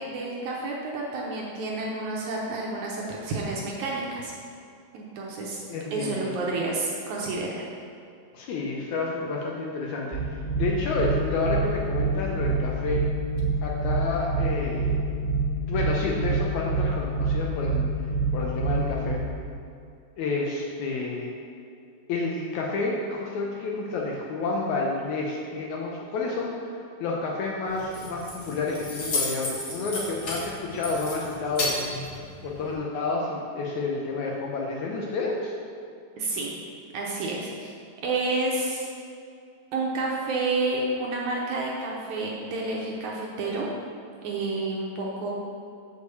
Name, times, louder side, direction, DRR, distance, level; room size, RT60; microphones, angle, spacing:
voice 1, 0.0-4.3 4.9-5.6 5.9-7.6 36.2-36.5 36.9-37.7 38.0-38.9 39.7-43.7 44.2-45.3, right 2 dB, 70° right, -3 dB, 1.9 m, -30 dB
voice 2, 5.7-6.3 8.3-13.1 13.6-15.0 15.7-17.8 18.3-19.2 20.2-21.3 22.1-31.8 32.4-35.5, left 3 dB, 75° left, -2 dB, 1.8 m, -30 dB
sound 1, 10.1-19.1, right 3 dB, 40° right, 0.8 m, -26 dB
Keys jangling, 27.7-32.7, left 2 dB, 45° left, 2.2 m, -33 dB
6.6 x 4.7 x 6.8 m, 2.4 s
omnidirectional pair, 4.0 m